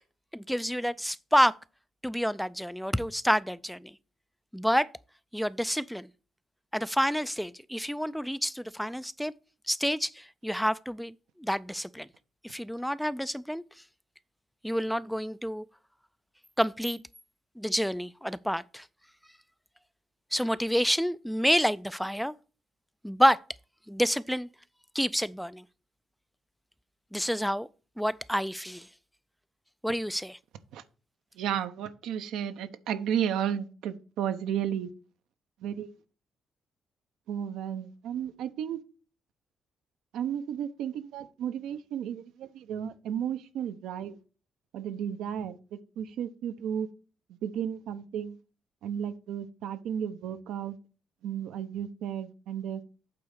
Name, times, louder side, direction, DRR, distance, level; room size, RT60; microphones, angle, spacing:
voice 1, 0.3-1.6 2.0-3.9 4.5-4.9 5.3-6.1 6.7-9.3 9.7-12.1 12.4-13.6 14.6-15.6 16.6-17.0 17.6-18.9 20.3-22.3 23.0-23.4 23.9-24.5 24.9-25.6 27.1-27.7 28.0-28.9 29.8-30.4, equal, ahead, 0.3 m, -28 dB
voice 2, 31.4-34.9 35.6-35.9 37.3-38.8 40.1-44.1 44.7-45.5 46.0-46.9 47.4-48.4 48.8-50.8 51.2-52.8, right 9 dB, 85° right, 0.7 m, -33 dB
8.6 x 3.8 x 6.4 m
cardioid pair, 90°, 0 cm